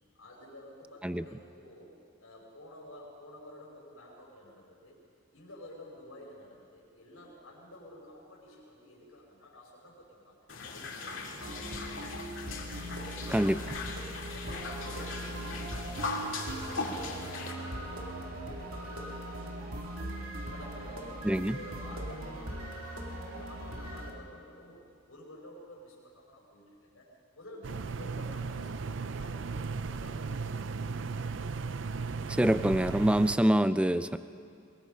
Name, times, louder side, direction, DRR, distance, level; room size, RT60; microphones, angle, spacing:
voice 1, 0.1-1.9 2.2-5.0 5.3-10.4 10.7-12.5 12.9-13.6 14.3-24.8 25.1-30.5, left 1 dB, 85° left, -4 dB, 5.5 m, -51 dB
sound 1, 10.5-17.5, left 3 dB, 65° left, 2.5 m, -39 dB
sound 2, 11.4-24.1, right 1 dB, 90° right, 2.5 m, -40 dB
voice 2, 21.2-21.6 32.3-34.2, right 1 dB, 5° right, 12 dB, 0.4 m, -25 dB
sound 3, 27.6-33.4, right 4 dB, 60° right, 0.5 m, -36 dB
22.5 x 21.0 x 5.7 m, 2.4 s
head